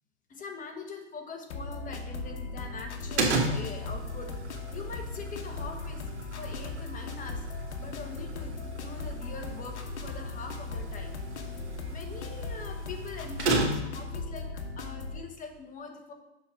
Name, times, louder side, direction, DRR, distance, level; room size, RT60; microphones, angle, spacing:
voice 1, 0.3-6.0 6.4-11.1 11.9-14.5 14.8-16.1, left 4 dB, 25° left, 3 dB, 1.4 m, -43 dB
sound 1, 1.5-15.2, left 3 dB, 80° left, 1.0 m, -38 dB
sound 2, 3.2-14.1, right 2 dB, 85° right, 1.7 m, -35 dB
6.5 x 4.2 x 5.7 m, 0.91 s
hypercardioid pair, 105°, 34 cm